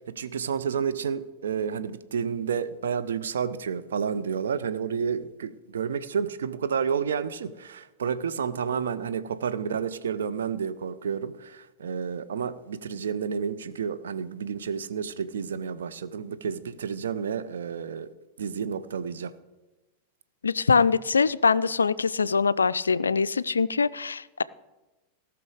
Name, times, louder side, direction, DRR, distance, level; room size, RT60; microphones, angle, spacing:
voice 1, 0.1-18.1 18.4-19.3, right 7 dB, 65° right, 0.6 m, -30 dB
voice 2, 20.4-24.4, left 5 dB, 75° left, 0.3 m, -23 dB
18.0 x 6.0 x 4.9 m
figure-of-eight pair, 90°, 0 cm